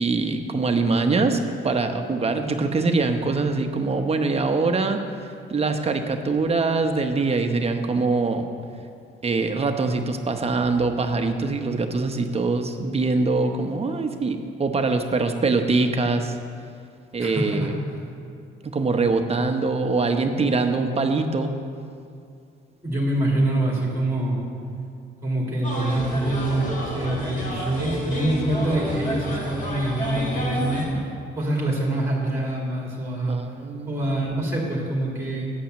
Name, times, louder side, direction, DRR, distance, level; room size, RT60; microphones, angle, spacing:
voice 1, 0.0-1.4 1.6-5.0 5.5-8.5 9.2-16.4 17.1-17.7 18.6-21.5 30.9-31.1 33.3-34.2, right 3 dB, 30° right, 6 dB, 0.9 m, -23 dB
voice 2, 17.2-17.7 22.8-24.4 25.2-30.8 31.4-33.4 33.8-35.5, right 1 dB, 15° right, -3 dB, 2.4 m, -25 dB
sound 1, 25.6-30.9, equal, 40° left, 2.5 m, -30 dB
9.1 x 5.6 x 7.6 m, 2.4 s
cardioid pair, 90°, 20 cm